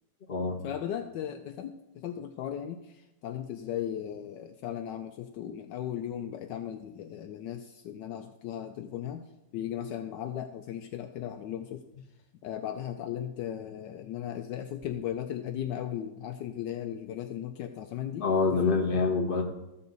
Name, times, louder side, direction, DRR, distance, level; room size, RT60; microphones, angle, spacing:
voice 1, 0.6-9.3 9.5-11.8 12.4-18.8, left 10 dB, 75° left, 7 dB, 1.2 m, -37 dB
voice 2, 18.2-19.4, left 4 dB, 30° left, 1 dB, 1.4 m, -26 dB
14.0 x 7.0 x 4.0 m, 0.94 s
omnidirectional pair, 2.0 m